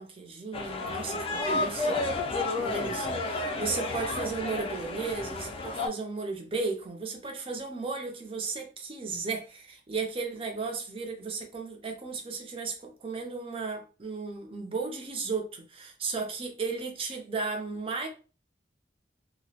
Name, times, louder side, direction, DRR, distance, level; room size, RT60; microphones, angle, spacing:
voice 1, 0.0-2.2 2.6-18.1, right 4 dB, 30° right, 0.5 m, -35 dB
sound 1, 0.5-5.9, left 2 dB, 30° left, 0.3 m, -31 dB
2.2 x 2.0 x 2.7 m
head